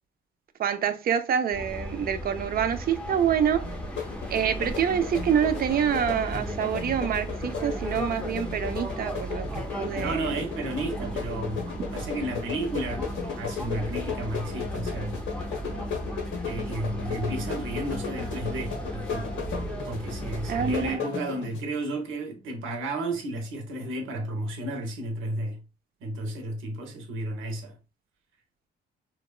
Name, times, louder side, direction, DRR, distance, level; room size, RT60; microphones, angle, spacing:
voice 1, 0.6-3.7 4.3-10.3 11.0-11.1 20.5-21.0, right 8 dB, 50° right, 0.4 m, -26 dB
sound 1, 1.5-21.0, right 1 dB, 5° left, 0.6 m, -36 dB
sound 2, 3.6-21.6, left 6 dB, 80° left, 0.8 m, -36 dB
voice 2, 9.9-15.7 16.4-19.3 19.9-25.6 26.0-27.8, right 1 dB, 85° right, 0.8 m, -33 dB
2.9 x 2.1 x 2.3 m
cardioid pair, 90°, 20 cm